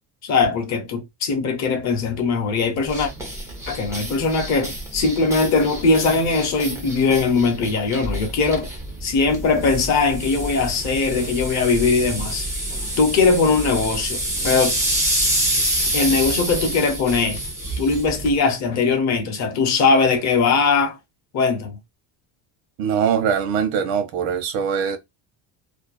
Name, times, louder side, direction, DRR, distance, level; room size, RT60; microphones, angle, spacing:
voice 1, 0.2-3.1 3.7-8.7 9.0-12.5 13.0-14.8 15.9-17.4 17.8-21.0 21.3-21.8, left 4 dB, 40° left, 0.7 m, -20 dB
sound 1, 2.8-18.4, right 1 dB, 10° right, 0.4 m, -27 dB
voice 2, 22.8-25.0, right 7 dB, 75° right, 0.9 m, -22 dB
2.6 x 2.2 x 2.3 m
cardioid pair, 180°, 45 cm